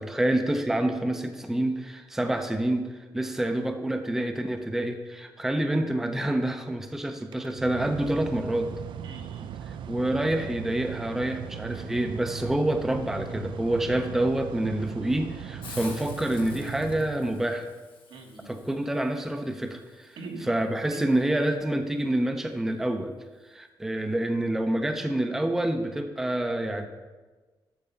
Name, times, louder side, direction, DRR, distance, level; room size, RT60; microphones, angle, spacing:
voice 1, 0.0-2.9 3.1-8.7 9.9-17.7 18.5-20.1 20.4-23.1 23.5-26.9, right 1 dB, 5° right, 6 dB, 0.5 m, -27 dB
Mechanical fan, 7.2-17.7, right 9 dB, 70° right, 0.3 m, -39 dB
voice 2, 9.0-9.5 18.1-18.5 20.2-20.5 20.9-21.2, right 4 dB, 85° right, 1 dB, 1.5 m, -41 dB
Hiss, 15.6-21.2, left 4 dB, 80° left, 1.3 m, -49 dB
8.5 x 4.4 x 6.8 m, 1.3 s
wide cardioid pair, 175°, 9 cm